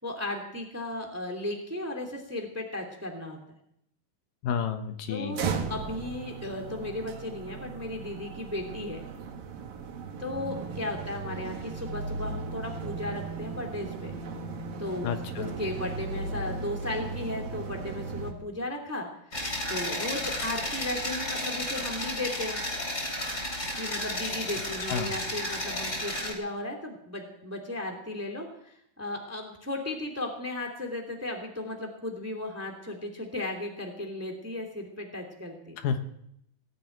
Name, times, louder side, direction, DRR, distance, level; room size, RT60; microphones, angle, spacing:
voice 1, 0.0-3.4 5.1-9.0 10.2-14.1 14.8-15.1 15.4-19.3 19.7-22.6 23.8-35.8, left 1 dB, 5° right, 3 dB, 2.0 m, -35 dB
voice 2, 4.4-5.4 15.0-15.5 24.9-25.1 35.8-36.0, left 7 dB, 75° left, 7 dB, 2.7 m, -30 dB
sound 1, 5.3-18.3, right 4 dB, 85° right, 3.6 m, -36 dB
sound 2, 19.3-26.3, left 1 dB, 20° left, 3.4 m, -33 dB
18.5 x 7.6 x 9.3 m, 0.74 s
omnidirectional pair, 4.0 m